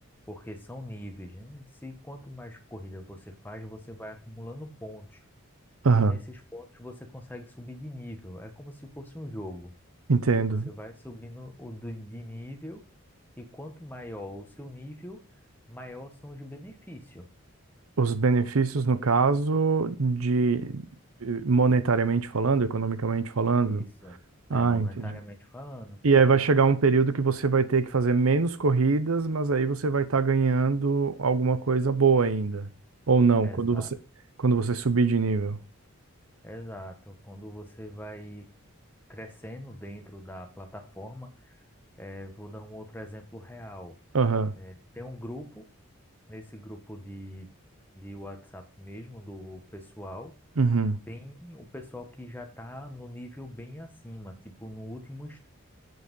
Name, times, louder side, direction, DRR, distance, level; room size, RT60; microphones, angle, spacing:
voice 1, 0.3-5.2 5.9-9.7 10.6-12.8 13.4-15.3 15.7-17.3 23.4-24.2 24.5-26.0 33.4-33.9 36.4-38.5 39.1-41.6 42.0-44.0 44.6-45.7 46.3-47.5 47.9-50.4 51.1-55.5, left 1 dB, 10° left, 1.4 m, -42 dB
voice 2, 5.8-6.2 10.1-10.7 18.0-20.9 21.2-23.8 24.5-25.1 26.0-32.7 33.1-33.8 34.4-35.6 44.1-44.5 50.6-51.0, right 4 dB, 90° right, 0.8 m, -23 dB
7.9 x 6.7 x 5.5 m
head